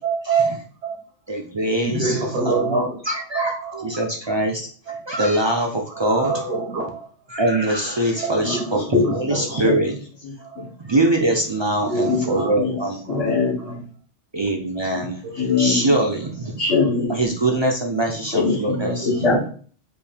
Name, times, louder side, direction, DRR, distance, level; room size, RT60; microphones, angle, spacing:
voice 1, 0.0-0.9 1.7-3.0 3.3-3.8 4.9-5.2 5.9-7.1 8.2-9.6 10.4-10.6 11.8-12.8 13.1-13.4 14.9-15.4 18.8-19.4, right 4 dB, 80° right, 1.4 m, -27 dB
voice 2, 1.3-2.1 2.4-6.3 7.3-9.9 10.8-13.3 14.3-15.2 15.6-16.6 17.1-19.1, right 1 dB, 40° right, 0.4 m, -23 dB
voice 3, 8.9-9.7 10.2-10.7 12.1-12.8 13.1-13.9 15.3-15.9 16.6-17.1 18.3-19.5, left 4 dB, 85° left, 1.8 m, -22 dB
5.1 x 2.6 x 3.4 m
omnidirectional pair, 1.2 m